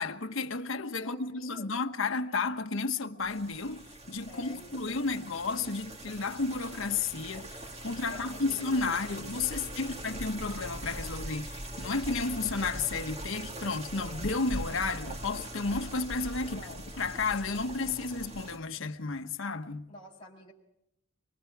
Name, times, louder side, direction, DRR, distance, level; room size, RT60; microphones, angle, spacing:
voice 1, 0.0-16.7 17.0-19.9, left 4 dB, 75° left, 1.1 m, -32 dB
voice 2, 1.0-1.7 4.3-5.1 8.1-8.9 9.5-10.1 16.4-16.9 19.9-20.5, left 2 dB, 25° left, 4.9 m, -50 dB
sound 1, 3.2-18.6, right 1 dB, 30° right, 1.9 m, -41 dB
24.5 x 24.0 x 4.6 m
head